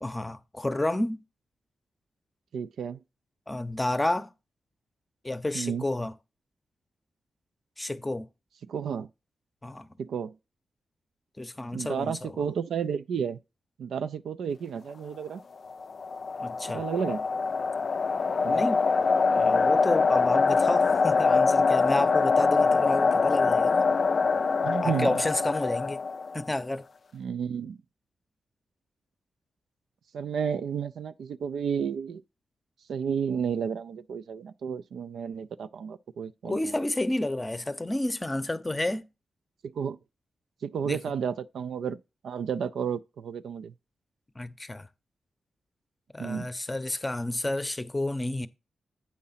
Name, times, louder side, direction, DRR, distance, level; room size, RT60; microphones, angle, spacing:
voice 1, 0.0-1.2 3.5-4.3 5.2-6.1 7.8-8.3 9.6-9.9 11.4-12.3 16.4-16.8 18.5-18.9 19.3-23.9 24.8-26.0 26.3-26.9 36.4-39.1 40.8-41.0 44.3-44.9 46.1-48.5, left 1 dB, 20° left, 0.7 m, -30 dB
voice 2, 2.5-3.0 5.5-5.8 8.7-9.1 10.0-10.3 11.7-13.4 13.8-15.4 16.7-17.2 18.4-18.6 24.6-25.2 27.1-27.8 30.1-32.2 32.9-36.7 39.6-40.0 40.6-43.7 46.2-46.5, right 7 dB, 80° right, 0.3 m, -32 dB
sound 1, 15.6-26.5, left 4 dB, 55° left, 0.3 m, -24 dB
8.5 x 3.8 x 5.6 m
cardioid pair, 60°, 0 cm